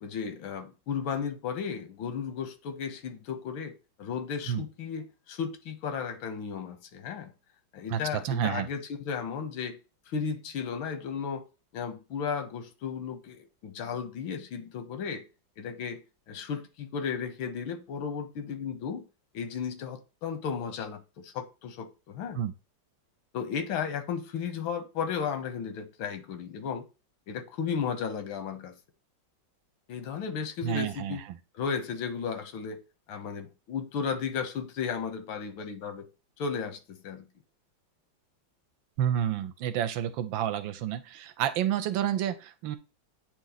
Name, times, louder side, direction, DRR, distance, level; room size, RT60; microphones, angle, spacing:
voice 1, 0.0-3.7 4.0-7.3 7.7-9.8 10.1-11.4 11.7-15.2 15.6-16.0 16.3-19.0 19.3-22.4 23.3-26.8 27.3-28.7 29.9-31.2 31.5-32.8 33.1-36.1 36.4-37.3, left 6 dB, 90° left, 1.7 m, -34 dB
voice 2, 8.2-8.7 22.4-22.5 30.6-31.2 39.0-42.8, right 10 dB, 80° right, 1.3 m, -29 dB
8.9 x 3.0 x 4.0 m
omnidirectional pair, 2.2 m